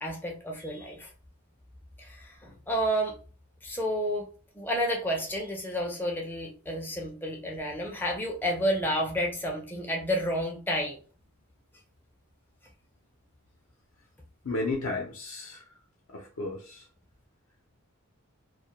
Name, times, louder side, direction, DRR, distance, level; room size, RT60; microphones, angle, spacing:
voice 1, 0.0-1.1 2.0-3.2 3.6-4.2 4.5-11.0, equal, 10° left, -1 dB, 0.4 m, -30 dB
voice 2, 14.4-15.6 16.1-16.9, left 2 dB, 70° left, 0 dB, 0.5 m, -33 dB
2.1 x 2.1 x 2.8 m, 0.38 s
head